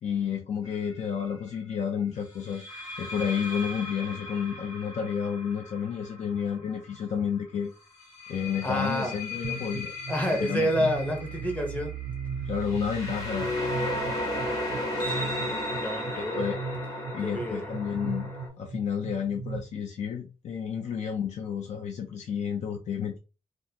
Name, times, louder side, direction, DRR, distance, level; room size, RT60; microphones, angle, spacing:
voice 1, 0.0-2.6 3.0-7.7 8.3-9.9 10.4-10.9 12.5-13.5 16.2-16.6 17.1-18.3 18.6-23.2, left 7 dB, 70° left, 0.6 m, -31 dB
sound 1, 0.6-0.9 2.4-7.2 8.0-18.5, left 1 dB, 30° left, 1.3 m, -35 dB
voice 2, 8.6-9.2 10.1-11.9 14.9-15.3 15.7-16.5 17.2-17.7, equal, 10° left, 0.8 m, -29 dB
sound 2, 9.4-19.6, right 5 dB, 60° right, 0.4 m, -38 dB
3.6 x 2.2 x 2.8 m
wide cardioid pair, 170°, 12 cm